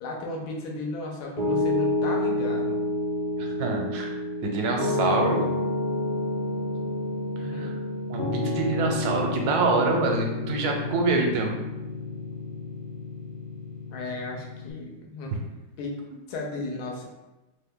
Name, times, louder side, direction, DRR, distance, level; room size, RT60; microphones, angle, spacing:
voice 1, 0.0-2.8 7.3-7.7 13.9-15.3 15.8-16.0 16.3-17.1, left 2 dB, 85° left, 0 dB, 1.2 m, -35 dB
Piano, 1.4-14.7, left 2 dB, 35° left, 0.6 m, -29 dB
voice 2, 3.4-4.1 4.4-5.5 7.4-7.7 8.1-11.5 15.3-15.4, right 3 dB, 80° right, 2 dB, 1.1 m, -26 dB
2.9 x 2.2 x 3.4 m, 1.0 s
omnidirectional pair, 1.7 m